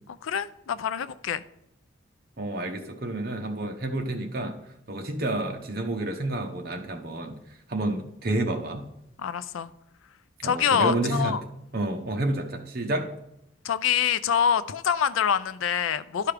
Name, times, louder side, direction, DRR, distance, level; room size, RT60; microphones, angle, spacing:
voice 1, 0.2-1.4 9.2-9.7 10.4-11.4 13.6-16.3, left 8 dB, 90° left, 0.4 m, -25 dB
voice 2, 2.4-4.6 4.9-8.8 10.4-11.4 11.7-13.1, right 2 dB, 50° right, 1.0 m, -29 dB
11.5 x 4.7 x 3.4 m
head